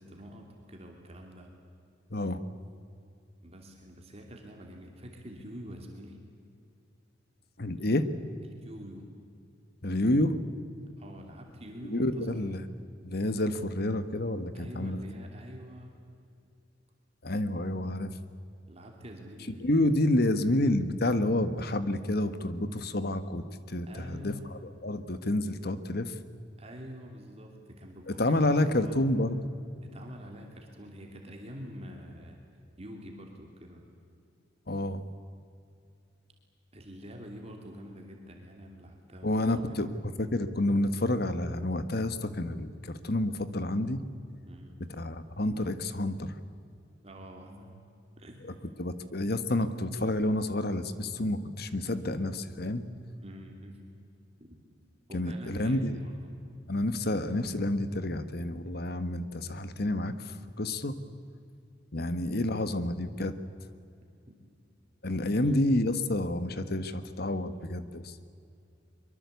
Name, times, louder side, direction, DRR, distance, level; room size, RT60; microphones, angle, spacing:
voice 1, 0.0-1.5 3.4-6.2 7.8-7.9 8.4-9.1 11.0-12.6 14.5-16.0 18.7-20.0 23.9-24.4 26.6-29.0 29.8-32.4 32.8-33.9 36.7-40.0 44.5-44.8 47.0-47.8 48.2-48.4 53.2-53.9 54.4-54.6 55.1-56.4 61.9-62.1 62.7-62.9 64.3-64.4 65.3-65.6, equal, 30° right, 1 dB, 2.9 m, -46 dB
voice 2, 7.6-8.0 9.8-10.4 11.8-12.6 13.0-15.0 17.2-18.1 19.6-24.3 24.8-26.1 28.1-29.4 34.7-35.0 39.2-39.9 40.2-44.0 45.0-46.3 48.8-52.8 55.1-56.0 56.7-61.0 61.9-63.3 65.0-68.2, left 1 dB, 55° left, 12 dB, 1.4 m, -29 dB
23.5 x 23.5 x 8.3 m, 2.5 s
head